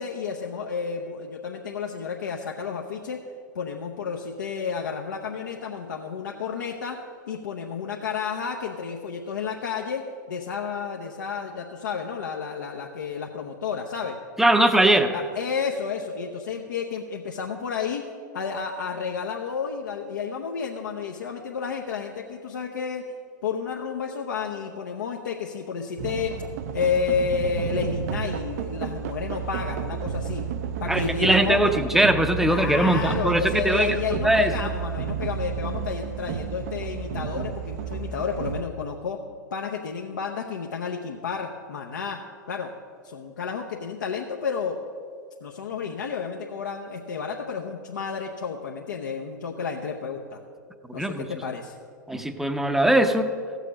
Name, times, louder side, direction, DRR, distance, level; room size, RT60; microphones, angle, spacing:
voice 1, 0.0-3.2 3.5-7.0 7.3-10.0 10.3-14.2 15.1-18.0 18.3-23.0 23.4-26.3 26.7-30.4 30.8-31.7 32.5-39.2 39.5-42.2 42.5-42.7 43.0-44.8 45.4-50.4 50.9-51.7, left 6 dB, 65° left, 1 dB, 0.8 m, -31 dB
voice 2, 14.4-15.1 30.9-34.5 50.9-51.2 52.1-53.3, right 1 dB, 5° right, 8 dB, 0.7 m, -21 dB
sound 1, 26.0-38.6, right 7 dB, 55° right, 0.6 m, -31 dB
15.0 x 6.7 x 6.2 m, 2.3 s
figure-of-eight pair, 95°, 10 cm